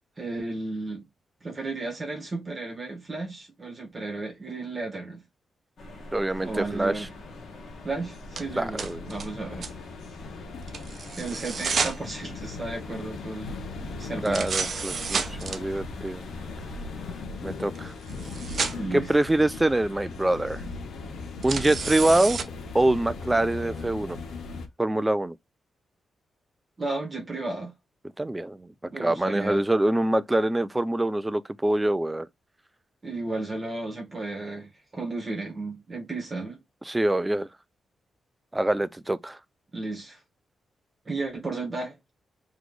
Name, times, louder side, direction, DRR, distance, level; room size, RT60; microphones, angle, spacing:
voice 1, 0.2-1.1 1.4-5.2 6.4-7.1 7.8-9.7 11.1-13.5 14.0-14.6 18.7-19.1 26.8-27.7 28.9-29.6 33.0-36.6 39.7-40.2 41.0-42.0, right 2 dB, 25° right, 1.4 m, -34 dB
sound 1, 5.8-17.2, left 1 dB, 55° left, 1.5 m, -45 dB
voice 2, 6.1-7.1 8.6-9.1 14.2-16.2 17.4-17.9 18.9-20.6 21.4-22.4 22.7-24.2 24.8-25.4 28.2-32.3 36.9-37.5 38.5-39.4, right 1 dB, 10° right, 0.3 m, -25 dB
sound 2, 6.3-24.7, left 4 dB, 70° left, 0.9 m, -39 dB
sound 3, 8.4-8.5 8.8-9.3 9.6-9.7 10.7-12.0 14.3-15.6 17.8-17.9 18.1-18.8 21.4-22.4, right 5 dB, 45° right, 0.6 m, -30 dB
4.1 x 3.1 x 3.2 m
wide cardioid pair, 160°, 0 cm